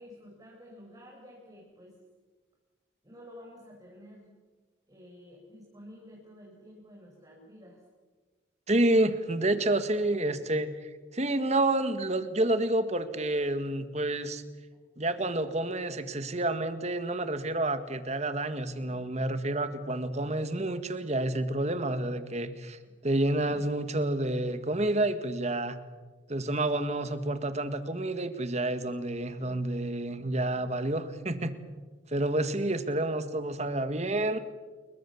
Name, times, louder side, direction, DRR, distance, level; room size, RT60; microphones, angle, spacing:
voice 1, 0.0-2.0 3.0-4.3 4.9-7.8 22.8-22.9, equal, 20° right, -2 dB, 5.3 m, -51 dB
voice 2, 8.7-14.4 15.0-25.8 26.3-31.6 32.1-34.4, right 1 dB, 35° right, 10 dB, 1.7 m, -29 dB
29.0 x 22.5 x 7.2 m, 1.4 s
head